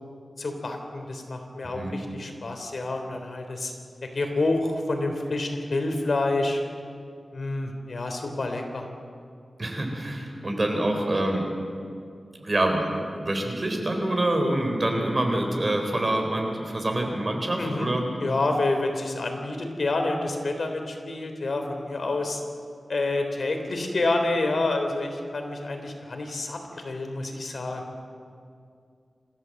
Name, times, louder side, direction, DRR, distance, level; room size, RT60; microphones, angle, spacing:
voice 1, 0.4-3.7 4.1-6.6 7.3-8.9 17.6-22.4 22.9-27.8, left 2 dB, 60° left, 4 dB, 3.3 m, -28 dB
voice 2, 9.6-11.5 12.4-18.0, right 1 dB, 35° right, 3 dB, 4.0 m, -26 dB
27.5 x 15.0 x 7.7 m, 2.3 s
wide cardioid pair, 110°, 0 cm